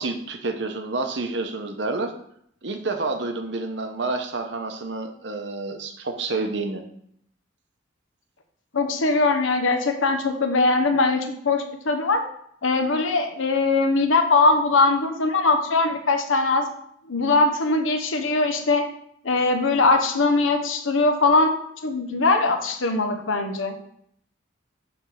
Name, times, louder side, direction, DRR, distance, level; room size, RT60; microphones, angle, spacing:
voice 1, 0.0-2.1 2.6-6.8, right 3 dB, 60° right, 5 dB, 0.9 m, -29 dB
voice 2, 8.7-12.2 12.6-16.7 17.1-18.9 19.2-21.5 21.8-23.8, left 3 dB, 85° left, 6 dB, 0.9 m, -21 dB
7.1 x 3.5 x 6.3 m, 0.69 s
head